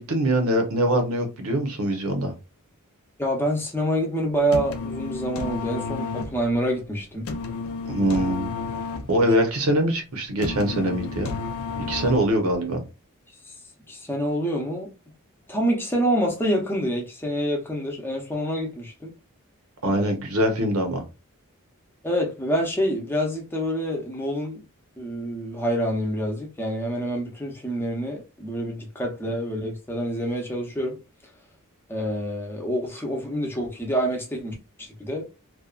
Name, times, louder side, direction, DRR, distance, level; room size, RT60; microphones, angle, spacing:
voice 1, 0.0-2.3 7.9-8.5 9.1-11.3 11.9-12.8 19.8-21.0, right 1 dB, 80° right, 0.8 m, -23 dB
voice 2, 3.2-7.3 9.2-9.3 13.5-13.6 13.9-14.9 15.5-19.1 19.8-20.2 22.0-24.6 25.0-31.0 31.9-35.3, equal, 10° left, 0.6 m, -27 dB
sound 1, 4.3-12.5, left 4 dB, 70° left, 0.4 m, -32 dB
2.6 x 2.3 x 2.3 m
head